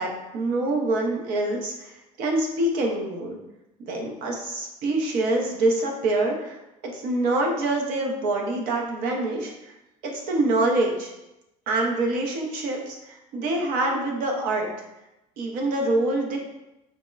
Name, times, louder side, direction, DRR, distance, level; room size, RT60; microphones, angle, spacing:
voice 1, 0.0-3.4 3.9-6.6 6.8-9.5 10.0-11.1 11.7-14.7 15.4-16.4, right 2 dB, 80° right, 0 dB, 0.6 m, -25 dB
4.0 x 2.0 x 2.3 m, 0.94 s
cardioid pair, 170°, 15 cm